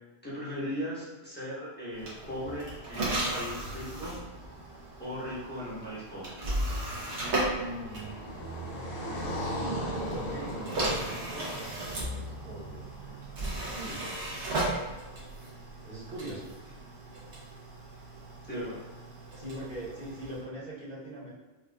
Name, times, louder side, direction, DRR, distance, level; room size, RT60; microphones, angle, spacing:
voice 1, 0.2-4.2 5.0-6.4 15.4-15.5 18.5-18.8, equal, 10° left, -9 dB, 1.1 m, -38 dB
sound 1, 1.9-8.9 9.9-20.5, right 1 dB, 90° right, 1.2 m, -36 dB
Car passing by, 6.4-13.5, equal, 65° left, 0.8 m, -38 dB
voice 2, 7.5-8.2 10.1-13.1 13.7-14.1 15.8-16.5 19.3-21.3, right 1 dB, 55° right, -9 dB, 1.3 m, -42 dB
4.6 x 2.4 x 2.3 m, 1.2 s
omnidirectional pair, 1.1 m